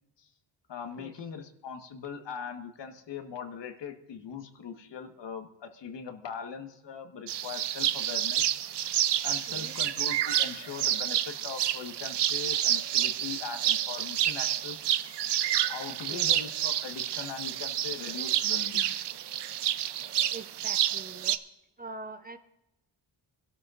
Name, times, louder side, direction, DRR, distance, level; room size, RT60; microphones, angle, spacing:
voice 1, 0.7-8.5 9.2-14.8 15.7-18.9, left 6 dB, 60° left, 6 dB, 1.4 m, -40 dB
sound 1, 7.3-21.4, right 11 dB, 60° right, 0.7 m, -29 dB
voice 2, 20.3-21.4 21.8-22.4, right 2 dB, 20° right, 9 dB, 0.6 m, -43 dB
25.0 x 12.5 x 2.5 m, 0.86 s
cardioid pair, 95°, 47 cm